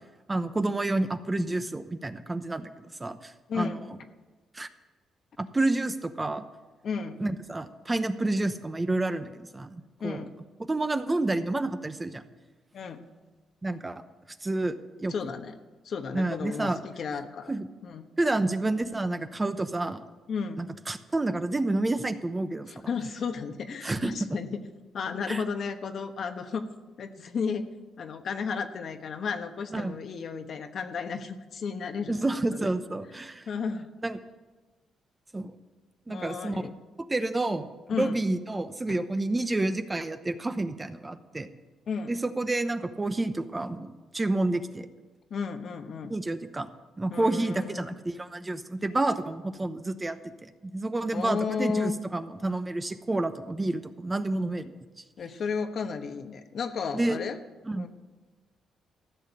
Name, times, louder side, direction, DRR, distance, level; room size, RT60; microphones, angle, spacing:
voice 1, 0.3-3.8 4.5-4.7 5.4-6.4 7.2-10.2 10.7-12.2 13.6-14.0 14.4-15.1 16.1-16.8 17.5-17.7 18.2-20.0 20.6-22.7 23.8-24.1 25.3-25.4 29.7-29.9 32.1-33.4 34.0-34.2 35.3-35.5 36.1-36.6 37.1-41.5 42.1-44.9 46.1-46.7 47.0-50.2 50.4-54.7 56.9-57.2 57.7-57.9, right 2 dB, 20° right, 10 dB, 0.8 m, -29 dB
voice 2, 3.5-3.9 6.8-7.2 10.0-10.3 12.7-13.0 15.1-15.6 15.8-17.5 17.8-18.1 20.3-20.6 22.7-24.6 24.9-26.6 27.0-27.7 28.0-32.2 32.5-32.8 33.5-33.9 36.1-36.8 37.9-38.2 38.9-39.0 41.9-42.1 45.3-46.2 47.1-48.0 51.1-52.0 55.2-57.4 57.7-57.9, left 5 dB, 55° left, 7 dB, 1.1 m, -33 dB
14.5 x 6.6 x 9.9 m, 1.3 s
cardioid pair, 90°, 0 cm